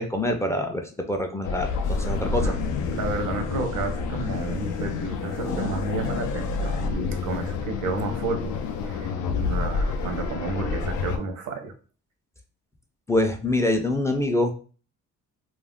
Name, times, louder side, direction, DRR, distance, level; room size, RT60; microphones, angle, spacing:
voice 1, 0.0-2.6 13.1-14.5, left 1 dB, 10° left, 4 dB, 0.3 m, -25 dB
sound 1, 1.4-11.2, left 4 dB, 90° left, 0.5 m, -28 dB
voice 2, 2.9-8.5 8.8-11.7, right 3 dB, 85° right, 5 dB, 0.7 m, -31 dB
2.4 x 2.0 x 3.4 m, 0.38 s
cardioid pair, 90°, 30 cm